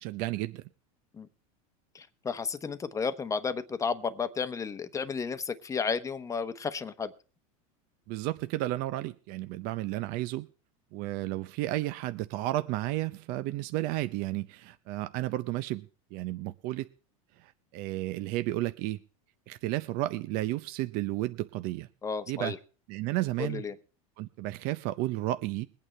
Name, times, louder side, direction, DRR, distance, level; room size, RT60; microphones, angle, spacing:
voice 1, 0.0-0.6 8.1-10.5 10.9-16.9 17.4-19.0 19.5-21.9 22.3-22.6 22.9-23.6 24.2-25.7, right 16 dB, 55° right, 12 dB, 0.6 m, -32 dB
voice 2, 1.9-7.1 22.0-22.6 23.4-23.7, left 5 dB, 15° left, 10 dB, 0.9 m, -33 dB
22.0 x 8.8 x 3.3 m, 0.38 s
supercardioid pair, 130°, 19 cm